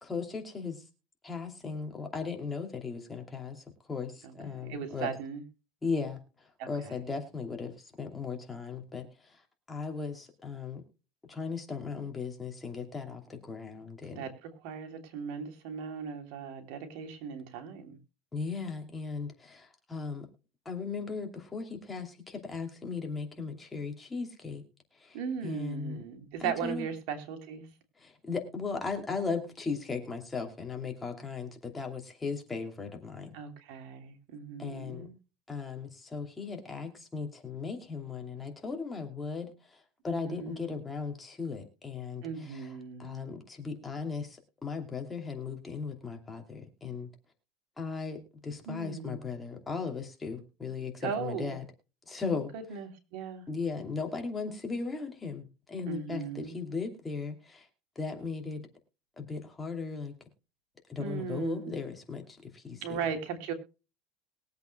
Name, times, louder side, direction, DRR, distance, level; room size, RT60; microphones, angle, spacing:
voice 1, 0.0-0.8 1.2-5.1 5.8-6.2 6.7-9.4 9.7-10.8 11.3-14.3 18.3-20.3 20.6-24.6 25.0-25.2 25.4-26.0 26.4-26.9 28.0-33.3 34.6-35.1 35.5-42.7 43.0-47.1 47.8-51.6 52.1-52.5 53.5-57.7 58.0-58.6 59.2-60.1 60.9-63.0, left 4 dB, 15° left, 3 dB, 2.7 m, -37 dB
voice 2, 4.7-5.4 6.6-6.9 14.1-18.0 25.1-27.7 33.3-35.1 40.1-40.8 42.2-43.4 48.7-49.3 51.0-51.5 52.3-53.5 55.9-56.6 61.0-61.8 62.8-63.5, right 6 dB, 70° right, 5 dB, 3.2 m, -38 dB
22.0 x 8.2 x 2.2 m, 0.33 s
supercardioid pair, 140°, 0 cm